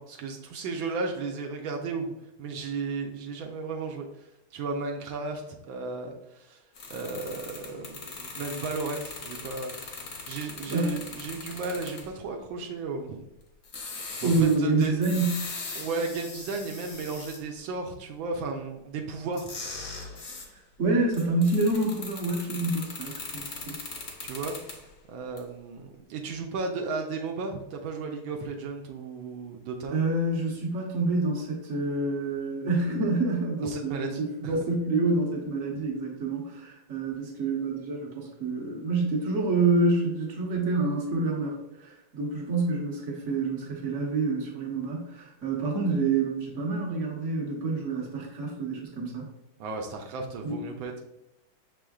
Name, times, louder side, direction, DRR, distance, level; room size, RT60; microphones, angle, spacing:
voice 1, 0.0-2.1 2.4-4.3 4.5-6.6 6.9-13.2 14.2-15.0 15.7-19.5 24.2-24.5 25.1-30.0 33.6-34.6 49.6-51.0, right 4 dB, 80° right, 2 dB, 1.4 m, -34 dB
sound 1, 6.7-12.1 13.6-17.4 19.3-20.5 21.1-24.9 25.4-25.5, left 4 dB, 55° left, 0.9 m, -40 dB
voice 2, 14.2-15.4 20.8-23.7 29.9-49.3 50.4-50.6, right 3 dB, 45° right, -1 dB, 1.2 m, -27 dB
6.3 x 3.6 x 2.3 m, 0.87 s
omnidirectional pair, 2.2 m